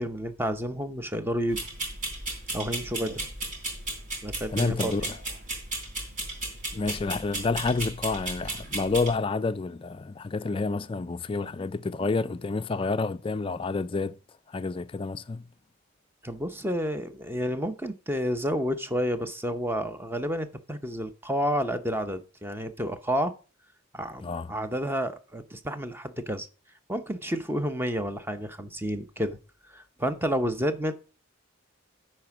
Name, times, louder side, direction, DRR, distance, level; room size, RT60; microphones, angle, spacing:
voice 1, 0.0-1.6 2.5-3.3 4.2-5.1 16.2-23.3 23.9-26.5 26.9-29.4 29.7-30.9, equal, 10° right, 0.7 m, -30 dB
sound 1, 1.5-9.1, right 2 dB, 40° right, 3.7 m, -35 dB
voice 2, 4.5-5.2 6.7-14.2 14.5-15.4 24.2-24.5, left 3 dB, 25° left, 0.3 m, -29 dB
11.0 x 4.4 x 5.9 m
head